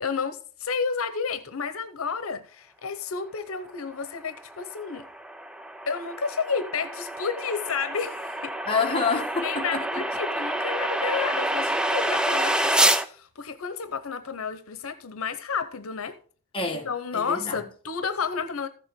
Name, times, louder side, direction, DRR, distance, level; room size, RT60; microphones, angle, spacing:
voice 1, 0.0-5.1 5.9-8.5 9.4-16.2 16.8-18.7, left 5 dB, 80° left, 0.8 m, -31 dB
sound 1, 4.4-13.0, right 1 dB, 5° right, 0.4 m, -27 dB
voice 2, 8.7-10.0 16.5-16.9 17.1-17.6, left 4 dB, 25° left, 1.5 m, -27 dB
14.5 x 6.9 x 3.7 m
head